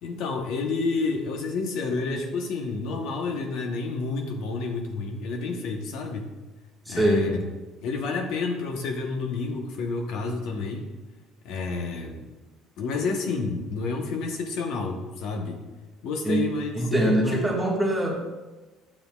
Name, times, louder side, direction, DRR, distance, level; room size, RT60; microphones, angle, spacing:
voice 1, 0.0-6.3 6.9-7.5 7.8-10.8 11.4-12.2 12.8-15.6 16.0-17.5, left 4 dB, 70° left, 3 dB, 0.9 m, -29 dB
voice 2, 6.9-7.3 16.2-16.4 16.7-18.2, right 1 dB, 5° right, -3 dB, 1.5 m, -23 dB
9.4 x 7.4 x 2.3 m, 1.2 s
cardioid pair, 140°, 0 cm